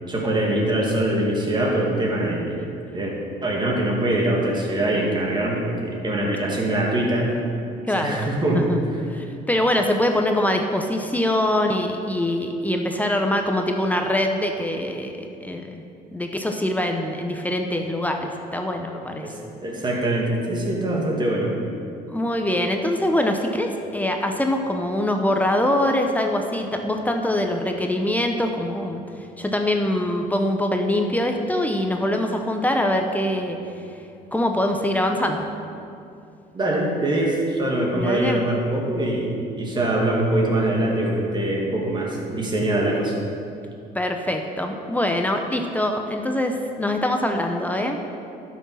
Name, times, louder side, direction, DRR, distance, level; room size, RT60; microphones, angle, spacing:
voice 1, 0.1-2.6 2.9-3.1 3.4-7.4 8.0-8.7 19.2-21.5 36.5-43.1, right 1 dB, 25° right, -2 dB, 2.2 m, -23 dB
voice 2, 7.9-8.3 8.5-8.8 9.1-15.8 16.1-19.3 22.1-29.0 29.4-33.6 34.3-35.5 37.9-38.4 43.9-48.0, left 1 dB, 10° left, 3 dB, 0.7 m, -23 dB
11.5 x 6.3 x 5.6 m, 2.6 s
cardioid pair, 110°, 17 cm